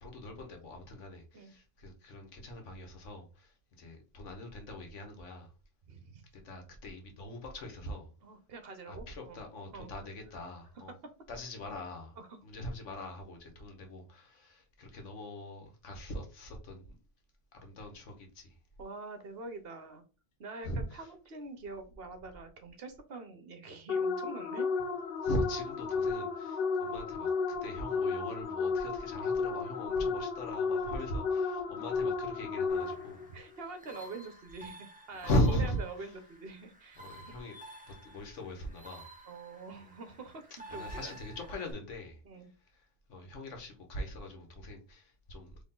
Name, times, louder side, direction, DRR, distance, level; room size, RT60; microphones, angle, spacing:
voice 1, 0.0-5.5 6.3-8.1 8.9-10.9 11.3-12.2 12.4-17.0 17.5-18.6 20.6-21.1 25.2-33.3 35.2-36.1 37.0-37.5 37.8-39.1 40.7-42.2 42.7-45.6, equal, 80° left, 1.4 m, -39 dB
voice 2, 5.9-6.2 8.2-9.4 9.7-10.0 12.2-12.4 18.8-20.0 20.4-24.8 30.0-30.1 33.3-37.0 39.3-41.2 42.2-42.5, right 3 dB, 60° right, 1.0 m, -45 dB
sound 1, 23.9-33.3, left 5 dB, 60° left, 0.7 m, -33 dB
sound 2, 32.7-41.7, right 1 dB, 10° right, 0.5 m, -52 dB
4.2 x 3.0 x 3.7 m
omnidirectional pair, 1.2 m